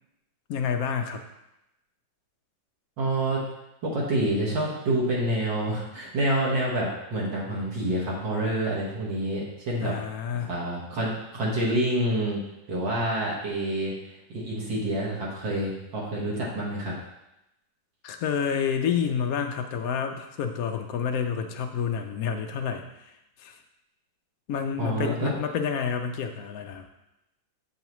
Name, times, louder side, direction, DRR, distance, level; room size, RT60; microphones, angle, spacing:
voice 1, 0.5-1.2 9.8-10.5 18.0-22.9 23.4-23.6 24.5-26.8, left 7 dB, 70° left, 6 dB, 0.8 m, -29 dB
voice 2, 3.0-3.4 3.8-10.0 10.3-12.4 12.7-13.9 14.3-17.0 24.8-25.3, right 1 dB, 70° right, -5 dB, 2.0 m, -27 dB
8.0 x 5.6 x 3.0 m, 0.89 s
omnidirectional pair, 2.1 m